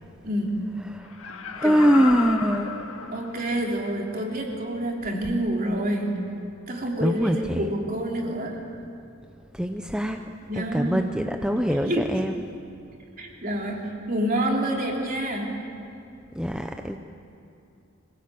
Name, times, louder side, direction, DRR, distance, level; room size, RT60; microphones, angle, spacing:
voice 1, 0.2-0.7 1.6-1.8 3.1-6.2 6.7-8.6 10.4-11.1 11.9-12.1 13.2-15.6, right 1 dB, 45° right, 0 dB, 3.4 m, -28 dB
Laughter, 1.0-3.7 4.2-4.3, left 5 dB, 80° left, 1.9 m, -34 dB
voice 2, 1.5-2.8 7.0-7.7 9.5-10.2 10.5-12.5 16.3-17.0, equal, 5° right, 5 dB, 0.7 m, -23 dB
25.0 x 17.5 x 8.6 m, 2.7 s
head